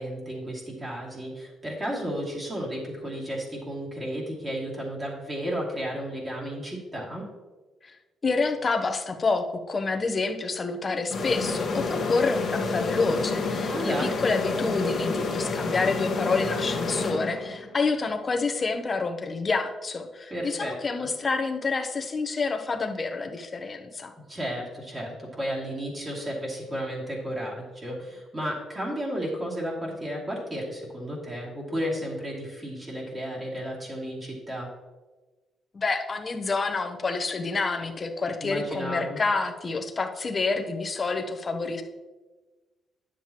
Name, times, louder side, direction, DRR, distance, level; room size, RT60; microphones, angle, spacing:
voice 1, 0.0-7.3 13.7-14.2 20.3-21.1 24.3-34.7 38.4-39.2, equal, 25° right, -4 dB, 2.6 m, -33 dB
voice 2, 8.2-24.1 35.7-41.8, left 4 dB, 35° left, 4 dB, 0.9 m, -28 dB
sound 1, 11.1-17.8, left 3 dB, 55° left, 1.3 m, -29 dB
9.9 x 7.5 x 3.0 m, 1.2 s
cardioid pair, 90°, 0 cm